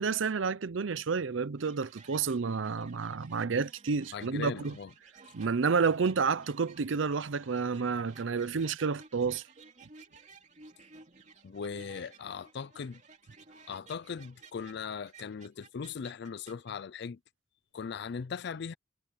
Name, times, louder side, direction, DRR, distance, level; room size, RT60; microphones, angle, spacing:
voice 1, 0.0-4.7 5.3-9.4, right 5 dB, 80° right, 0.6 m, -30 dB
sound 1, 1.6-16.7, right 4 dB, 40° right, 2.8 m, -56 dB
voice 2, 4.1-4.9 11.4-13.0 13.7-17.2 17.7-18.7, left 6 dB, 60° left, 0.4 m, -39 dB
head